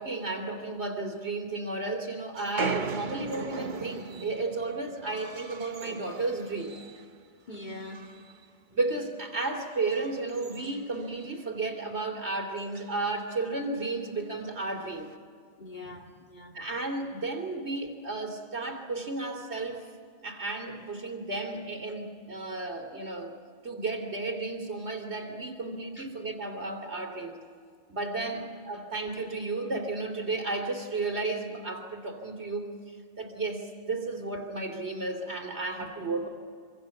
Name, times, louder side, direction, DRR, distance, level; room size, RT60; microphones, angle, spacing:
voice 1, 0.0-6.8 8.7-15.1 16.5-19.8 20.2-23.4 23.6-27.4 27.9-32.7 33.2-36.3, right 3 dB, 70° right, 3 dB, 3.4 m, -33 dB
sound 1, 2.4-7.2 7.5-8.4 8.8-9.0 9.6-11.5 11.8-11.9 12.2-12.3 12.6-13.0 13.8-13.9 14.8-15.1, right 4 dB, 45° right, 1.1 m, -39 dB
voice 2, 7.5-8.1 15.6-16.6 17.4-17.5 26.0-26.1 35.8-36.2, left 2 dB, 40° left, 1 dB, 3.2 m, -44 dB
26.0 x 25.5 x 7.2 m, 2.1 s
omnidirectional pair, 1.2 m